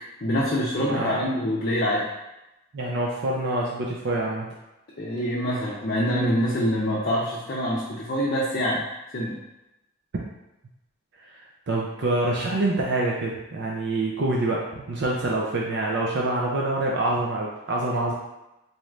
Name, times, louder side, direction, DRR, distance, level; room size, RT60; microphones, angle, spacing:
voice 1, 0.2-2.1 5.0-8.8 9.1-9.3, equal, 45° left, -7 dB, 0.6 m, -25 dB
voice 2, 0.9-1.2 2.7-4.5 11.2-18.1, right 2 dB, 50° right, -3 dB, 0.5 m, -26 dB
4.1 x 2.5 x 3.2 m, 0.94 s
head